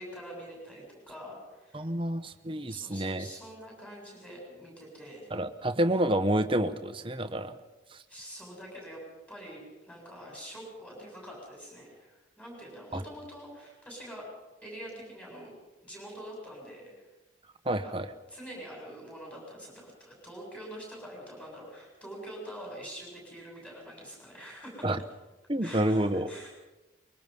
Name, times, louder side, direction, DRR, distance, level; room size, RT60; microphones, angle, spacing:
voice 1, 0.0-1.9 2.7-5.3 8.1-9.0 9.3-14.3 14.6-15.5 15.8-17.1 17.6-17.9 18.3-24.9 25.6-26.5, equal, 5° left, -2 dB, 7.3 m, -45 dB
voice 2, 1.7-3.2 5.3-7.6 12.9-13.0 17.7-18.1 24.8-25.0 25.5-26.3, right 1 dB, 25° right, 8 dB, 1.1 m, -28 dB
24.5 x 22.5 x 5.5 m, 1.1 s
head